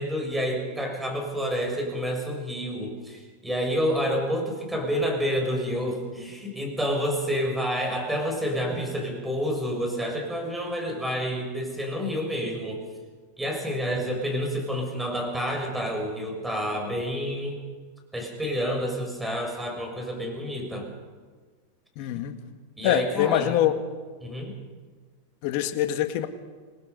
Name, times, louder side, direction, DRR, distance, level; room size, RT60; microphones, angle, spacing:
voice 1, 0.0-12.8 13.4-17.6 18.1-20.9 22.8-23.5 24.2-24.5, equal, 5° right, 2 dB, 6.1 m, -29 dB
voice 2, 21.9-22.4 22.8-23.7 25.4-26.3, left 12 dB, 55° left, 8 dB, 1.9 m, -24 dB
26.5 x 19.5 x 5.4 m, 1.5 s
hypercardioid pair, 120°, 0 cm